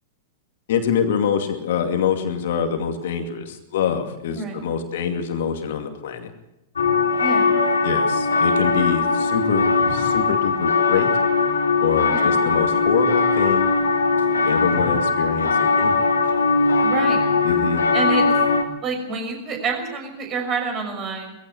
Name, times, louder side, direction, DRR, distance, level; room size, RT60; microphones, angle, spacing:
voice 1, 0.7-6.3 7.8-11.1 11.8-13.7 14.3-16.0 17.4-17.8, left 7 dB, 55° left, 6 dB, 2.4 m, -25 dB
voice 2, 4.3-4.6 7.2-7.5 12.1-12.3 16.8-17.2 17.9-18.2 18.8-21.3, right 4 dB, 30° right, 4 dB, 6.1 m, -27 dB
sound 1, 6.8-18.6, left 4 dB, 70° left, 2.7 m, -20 dB
20.5 x 15.5 x 8.2 m, 0.93 s
figure-of-eight pair, 100°, 0 cm